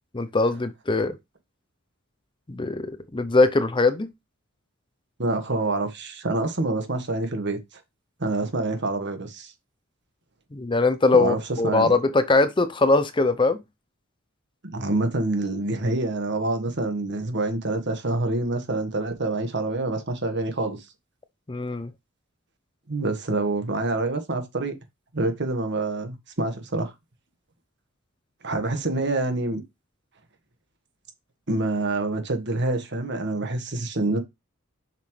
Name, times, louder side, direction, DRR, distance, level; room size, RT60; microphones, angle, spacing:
voice 1, 0.1-1.1 2.5-4.1 10.5-13.6 21.5-21.9, left 3 dB, 25° left, 0.6 m, -21 dB
voice 2, 5.2-7.6 8.2-9.5 11.1-11.4 11.6-11.9 14.7-20.9 22.9-24.7 25.1-26.9 28.4-29.6 31.5-34.2, right 2 dB, 55° right, 1.6 m, -26 dB
7.2 x 5.7 x 3.2 m
head